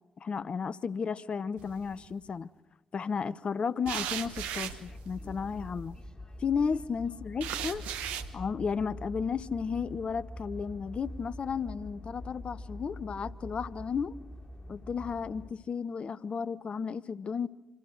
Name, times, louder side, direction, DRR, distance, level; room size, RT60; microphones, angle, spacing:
voice 1, 0.2-2.5 2.9-6.0 6.4-7.8 8.3-14.2 14.7-17.5, left 6 dB, 45° left, 0.8 m, -33 dB
sound 1, 1.6-2.1 3.9-5.9 7.4-8.3, right 10 dB, 75° right, 1.1 m, -37 dB
sound 2, 4.3-15.5, left 1 dB, 30° left, 3.3 m, -45 dB
26.5 x 26.0 x 6.6 m
hypercardioid pair, 40°, 3 cm